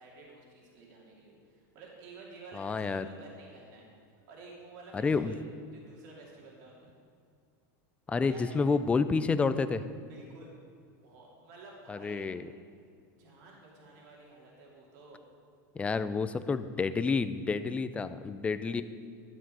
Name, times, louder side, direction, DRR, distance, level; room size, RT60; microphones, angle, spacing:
voice 1, 0.0-3.8 4.1-5.4 5.7-7.0 8.2-8.6 10.1-10.6 11.0-12.3 13.2-15.2, right 3 dB, 65° right, -3 dB, 2.6 m, -51 dB
voice 2, 2.5-3.1 4.9-5.4 8.1-9.9 11.9-12.5 15.7-18.8, left 4 dB, 10° left, 12 dB, 0.4 m, -29 dB
12.5 x 7.7 x 5.5 m, 2.2 s
supercardioid pair, 135°, 10 cm